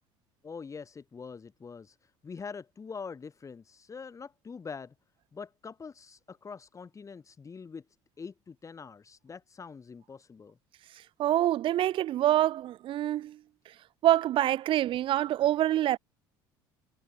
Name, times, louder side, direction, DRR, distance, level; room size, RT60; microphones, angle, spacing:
voice 1, 0.4-4.9 5.3-7.8 8.2-10.6, left 5 dB, 30° left, 4.2 m, -44 dB
voice 2, 11.2-13.4 13.7-13.8 14.0-16.0, right 13 dB, 55° right, 0.7 m, -26 dB
hypercardioid pair, 75°, 11 cm